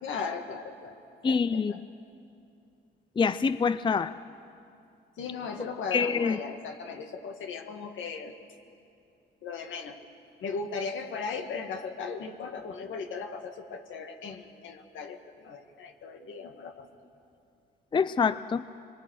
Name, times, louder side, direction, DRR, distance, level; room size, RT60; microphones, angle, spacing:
voice 1, 0.0-1.0 1.3-1.8 5.2-8.3 9.4-10.0 10.4-16.9, left 5 dB, 75° left, 5 dB, 2.1 m, -37 dB
voice 2, 1.2-1.7 3.2-4.2 5.9-6.4 17.9-18.6, left 5 dB, 25° left, 14 dB, 0.5 m, -25 dB
25.5 x 23.0 x 6.6 m, 2.5 s
cardioid pair, 90°, 20 cm